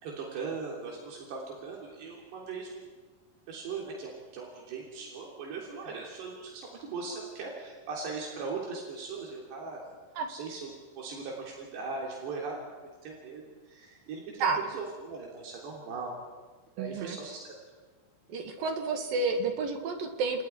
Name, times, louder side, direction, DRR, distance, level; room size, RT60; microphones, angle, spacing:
voice 1, 0.0-2.9 3.5-9.8 10.3-12.7 13.0-13.4 13.7-16.2 16.8-17.4, right 4 dB, 85° right, -2 dB, 5.4 m, -39 dB
voice 2, 16.8-17.2 18.3-20.4, right 4 dB, 65° right, 5 dB, 3.5 m, -30 dB
29.0 x 28.5 x 4.6 m, 1.4 s
omnidirectional pair, 4.7 m